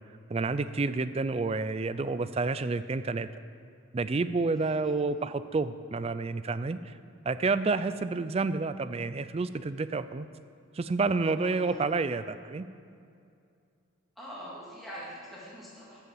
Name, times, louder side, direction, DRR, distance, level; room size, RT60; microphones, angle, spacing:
voice 1, 0.3-3.3 3.9-6.9 7.3-10.3 10.7-12.7, right 3 dB, 30° right, 13 dB, 0.3 m, -29 dB
voice 2, 4.6-5.3 11.3-11.8 14.2-16.0, equal, ahead, -8 dB, 2.0 m, -44 dB
13.5 x 5.7 x 7.8 m, 2.4 s
head